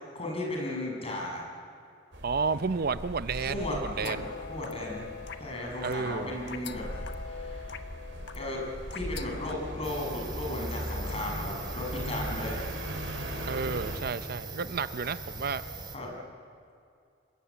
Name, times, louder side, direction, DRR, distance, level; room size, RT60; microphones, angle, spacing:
voice 1, 0.1-1.4 3.5-5.1 5.4-6.9 7.3-7.8 8.3-8.6 8.9-12.6 15.9-16.1, left 1 dB, 35° left, -1 dB, 6.7 m, -35 dB
sound 1, 2.1-14.0, equal, 80° right, 4.1 m, -39 dB
voice 2, 2.2-4.2 5.8-6.3 13.4-15.6, right 5 dB, 55° right, 13 dB, 0.6 m, -31 dB
sound 2, 4.0-9.6, left 6 dB, 65° left, 1.2 m, -43 dB
sound 3, 9.8-16.0, right 3 dB, 25° right, 2.6 m, -41 dB
26.0 x 22.5 x 8.6 m, 2.3 s
head